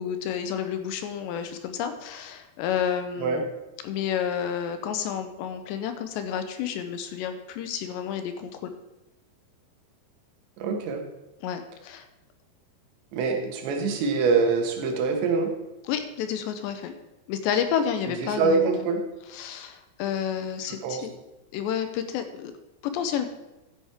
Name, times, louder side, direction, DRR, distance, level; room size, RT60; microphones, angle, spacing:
voice 1, 0.0-3.5 3.8-8.7 11.4-12.1 15.8-16.9 17.3-18.9 19.3-21.1 21.5-22.5 22.8-23.3, left 8 dB, 80° left, 8 dB, 2.9 m, -30 dB
voice 2, 10.6-11.0 13.1-15.5 18.2-19.0 20.7-21.0, right 4 dB, 75° right, 3 dB, 3.5 m, -24 dB
13.0 x 9.9 x 3.6 m, 0.99 s
omnidirectional pair, 5.2 m